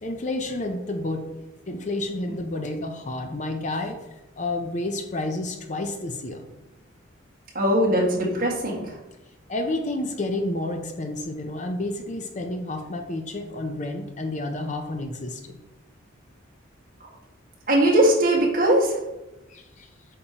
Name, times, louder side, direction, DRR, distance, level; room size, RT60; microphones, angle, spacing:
voice 1, 0.0-1.3 1.7-4.0 4.4-6.4 9.5-15.6 19.5-19.9, left 2 dB, 35° left, 5 dB, 0.6 m, -30 dB
voice 2, 7.5-9.0 17.7-19.0, right 1 dB, 45° right, -3 dB, 1.8 m, -20 dB
8.3 x 5.1 x 2.9 m, 0.98 s
head